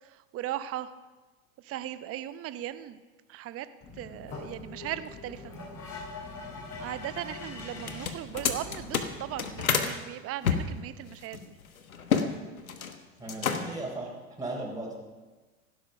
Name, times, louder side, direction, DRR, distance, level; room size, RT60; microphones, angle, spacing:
voice 1, 0.0-0.9 1.6-3.0 3.3-3.7 3.9-5.5 6.7-11.5, right 12 dB, 35° right, 13 dB, 0.9 m, -38 dB
sound 1, 3.8-9.6, left 3 dB, 35° left, 6.5 m, -43 dB
sound 2, 7.8-9.9 10.4-12.3 12.6-13.0 13.3-13.9, left 6 dB, 90° left, 1.3 m, -29 dB
voice 2, 13.2-15.0, right 2 dB, 10° right, -3 dB, 4.0 m, -37 dB
16.5 x 12.0 x 5.4 m, 1.3 s
hypercardioid pair, 90°, 41 cm